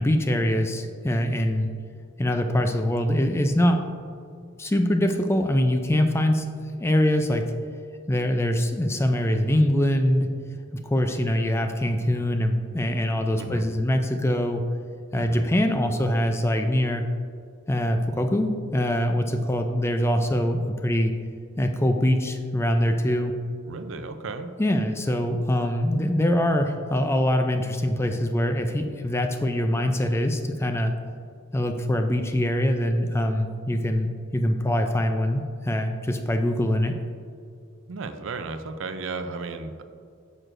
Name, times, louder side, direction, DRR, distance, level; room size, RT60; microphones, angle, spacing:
voice 1, 0.0-1.7 2.2-3.8 4.6-6.5 6.8-7.5 8.1-10.4 10.7-14.6 15.1-17.0 17.7-21.1 21.6-23.3 24.6-30.9 31.5-36.9, left 1 dB, 10° left, 5 dB, 0.3 m, -23 dB
voice 2, 13.4-13.7 15.1-15.4 23.7-24.5 37.9-39.8, right 4 dB, 65° right, 9 dB, 0.5 m, -34 dB
8.9 x 6.3 x 2.5 m, 2.3 s
head